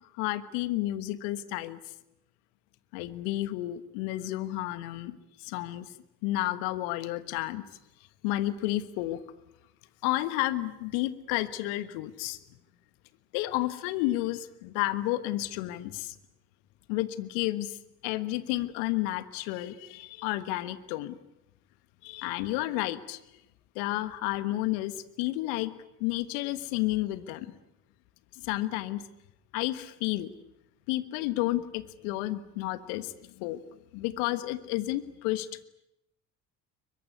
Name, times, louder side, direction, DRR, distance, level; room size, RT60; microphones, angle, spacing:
voice 1, 0.1-1.8 2.9-5.9 6.2-7.7 8.2-9.2 10.0-12.4 13.3-16.1 16.9-21.2 22.0-23.2 23.7-25.7 26.0-27.5 28.3-29.1 29.5-30.3 30.9-33.6 33.9-35.5, left 16 dB, 70° left, 15 dB, 1.5 m, -31 dB
22.0 x 22.0 x 9.7 m, 0.85 s
hypercardioid pair, 55°, 45 cm